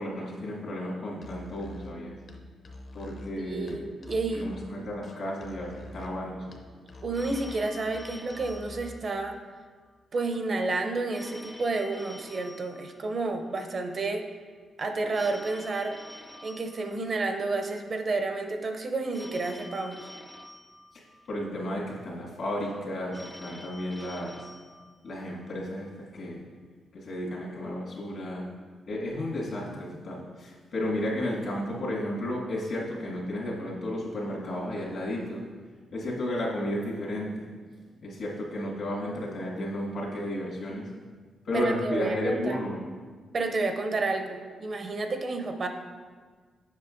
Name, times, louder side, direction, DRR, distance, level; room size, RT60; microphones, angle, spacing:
voice 1, 0.0-2.1 2.9-3.9 4.3-6.5 21.3-24.5 25.0-26.4 26.9-28.5 28.9-35.4 35.9-37.5 38.0-40.9 41.4-42.8, left 1 dB, 70° left, -4 dB, 1.7 m, -33 dB
Musical instrument, 1.1-9.1, left 1 dB, 50° left, 0.6 m, -45 dB
voice 2, 3.4-4.5 7.0-9.3 10.1-14.2 14.8-16.0 16.4-20.1 41.5-42.6 43.3-45.7, right 3 dB, 45° right, 5 dB, 0.5 m, -30 dB
Telephone, 7.1-9.6 11.1-13.6 15.1-17.6 19.1-21.6 23.1-25.6, left 1 dB, 5° left, 0.4 m, -48 dB
7.5 x 5.5 x 2.5 m, 1.5 s
cardioid pair, 95°, 0 cm